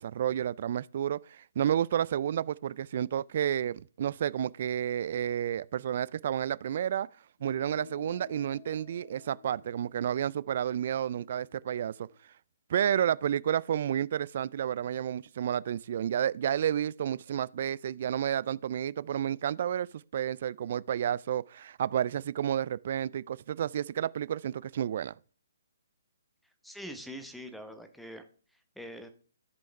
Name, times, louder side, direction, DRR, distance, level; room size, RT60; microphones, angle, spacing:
voice 1, 0.0-7.1 7.4-12.1 12.7-19.9 20.1-25.1, right 10 dB, 45° right, 0.3 m, -31 dB
sound 1, 7.4-12.2, left 7 dB, 55° left, 1.9 m, -54 dB
voice 2, 26.6-28.2 28.8-29.1, equal, ahead, 1.0 m, -43 dB
13.5 x 5.3 x 3.4 m
figure-of-eight pair, 130°, 0 cm